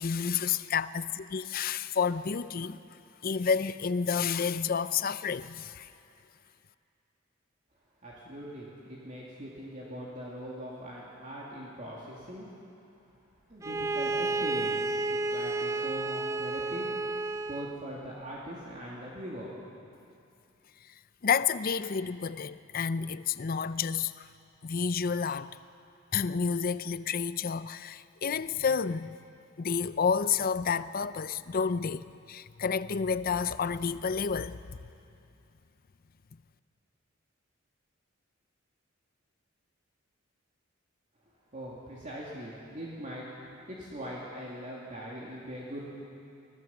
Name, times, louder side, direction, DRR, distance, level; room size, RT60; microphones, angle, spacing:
voice 1, 0.0-2.8 3.2-5.9 21.2-24.3 24.6-25.5 26.1-29.2 29.6-34.6, left 6 dB, 45° left, 0.5 m, -30 dB
voice 2, 8.0-12.5 13.5-16.9 17.5-19.5 41.5-43.3 43.7-45.9, equal, 40° right, 2.6 m, -41 dB
Bowed string instrument, 13.6-17.8, right 2 dB, 15° right, 0.4 m, -31 dB
25.0 x 17.0 x 7.1 m
head